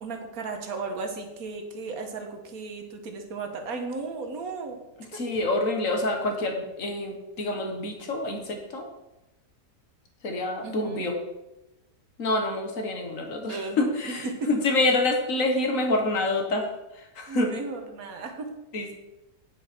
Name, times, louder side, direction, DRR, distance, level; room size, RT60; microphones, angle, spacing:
voice 1, 0.0-4.8 5.1-5.2 10.6-11.1 13.5-13.8 14.1-14.5 17.3-18.5, right 4 dB, 65° right, 4 dB, 1.7 m, -35 dB
voice 2, 5.1-8.9 10.2-11.1 12.2-17.6 18.7-18.9, left 2 dB, 55° left, 3 dB, 1.8 m, -27 dB
9.5 x 7.4 x 4.4 m, 0.97 s
omnidirectional pair, 1.7 m